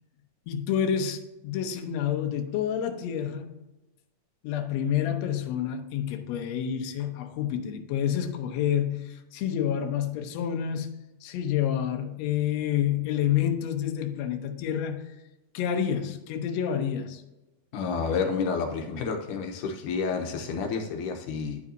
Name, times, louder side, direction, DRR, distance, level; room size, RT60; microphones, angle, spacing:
voice 1, 0.5-3.5 4.4-10.9 11.2-15.0 15.5-17.2, left 9 dB, 70° left, 6 dB, 1.8 m, -28 dB
voice 2, 17.7-21.6, left 5 dB, 85° left, 3 dB, 2.4 m, -30 dB
11.0 x 5.5 x 2.7 m, 1.0 s
omnidirectional pair, 3.6 m